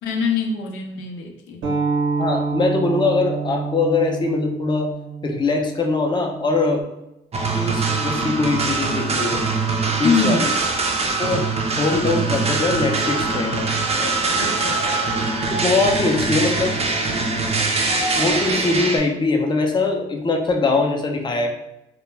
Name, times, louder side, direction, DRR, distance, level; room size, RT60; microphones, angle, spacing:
voice 1, 0.0-1.6 10.0-10.5 14.4-14.8, left 4 dB, 85° left, 2 dB, 0.5 m, -23 dB
sound 1, 1.6-6.8, right 4 dB, 85° right, 0.9 m, -27 dB
voice 2, 2.2-4.9 5.2-6.9 7.5-9.4 10.0-10.5 11.2-11.5 11.8-13.6 15.5-16.8 18.2-21.5, left 3 dB, 25° left, 3 dB, 0.5 m, -22 dB
sound 2, 7.3-19.0, right 4 dB, 30° right, 0.4 m, -23 dB
sound 3, 12.9-18.7, equal, 55° left, 0.8 m, -32 dB
2.2 x 2.0 x 3.2 m, 0.90 s
cardioid pair, 90°, 20 cm